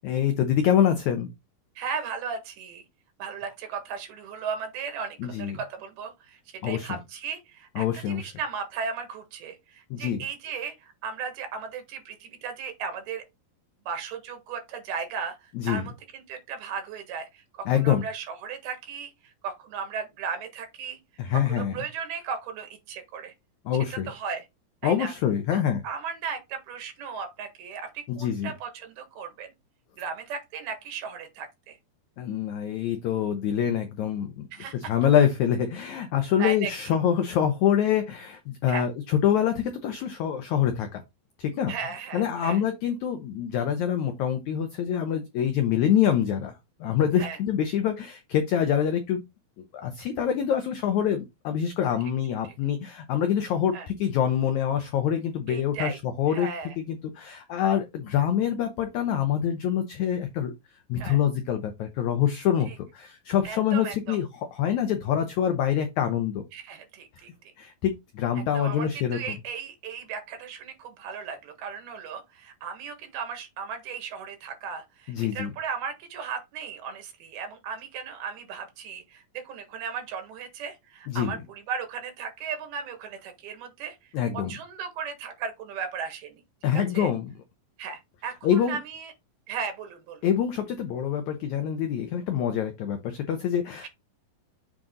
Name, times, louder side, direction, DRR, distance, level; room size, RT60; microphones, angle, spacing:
voice 1, 0.0-1.3 5.2-5.6 6.6-7.0 7.8-8.3 9.9-10.2 15.5-15.8 17.6-18.0 21.2-21.8 23.6-24.1 24.8-25.8 28.1-28.5 32.2-34.4 34.9-41.0 41.4-41.7 42.1-46.5 46.8-49.2 49.7-56.5 56.9-60.5 60.9-62.7 62.9-64.2 64.5-66.4 67.6-69.3 75.1-75.5 81.1-81.4 84.1-84.5 86.6-87.3 88.4-88.8 90.2-93.9, left 9 dB, 85° left, 1.6 m, -25 dB
voice 2, 1.8-2.8 3.2-13.2 13.9-21.0 21.5-23.3 23.9-24.5 24.8-25.1 25.5-29.5 30.0-31.8 34.5-34.8 36.4-36.9 38.7-38.9 41.7-42.6 47.2-47.4 53.7-53.9 55.5-56.0 56.3-56.8 61.0-61.2 62.7-62.8 63.5-64.2 66.5-67.3 68.5-84.0 84.3-86.4 86.7-87.1 87.8-89.1 89.5-90.2, right 6 dB, 85° right, 3.5 m, -36 dB
7.5 x 3.7 x 3.8 m
omnidirectional pair, 4.3 m